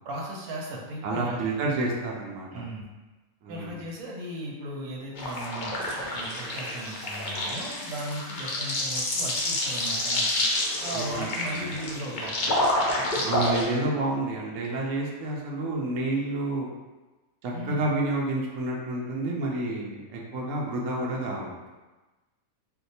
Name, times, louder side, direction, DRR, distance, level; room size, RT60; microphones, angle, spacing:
voice 1, 0.0-1.4 2.5-2.9 3.5-5.8 6.1-10.5 10.8-12.5 17.5-17.9, right 1 dB, 85° right, -2 dB, 1.2 m, -37 dB
voice 2, 1.0-2.6 3.4-3.7 10.9-11.6 13.2-16.7 17.4-21.6, right 2 dB, 65° right, -2 dB, 0.9 m, -29 dB
sound 1, 5.2-13.6, left 1 dB, 60° left, 0.5 m, -28 dB
2.8 x 2.1 x 4.0 m, 1.2 s
omnidirectional pair, 1.5 m